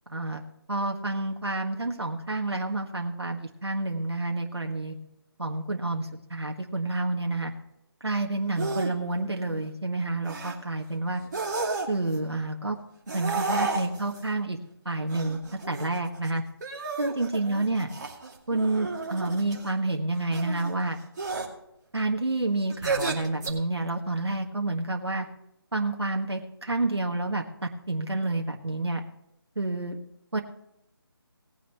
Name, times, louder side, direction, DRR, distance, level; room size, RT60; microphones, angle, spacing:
voice 1, 0.1-0.4 0.7-5.0 5.4-7.5 8.0-11.2 11.9-12.8 13.1-14.6 14.8-15.4 15.7-16.4 17.0-17.9 18.5-21.0 21.9-25.3 25.7-29.0 29.5-30.0 30.3-30.4, right 2 dB, 85° right, 2 dB, 1.5 m, -29 dB
sound 1, 8.6-8.9 9.3-9.7 10.3-10.5 11.2-12.2 13.1-14.2 15.1-16.3 16.6-19.7 20.3-20.7 21.2-21.5 22.7-23.5, right 3 dB, 45° right, 2.4 m, -32 dB
19.0 x 9.4 x 3.0 m, 0.81 s
figure-of-eight pair, 155°, 13 cm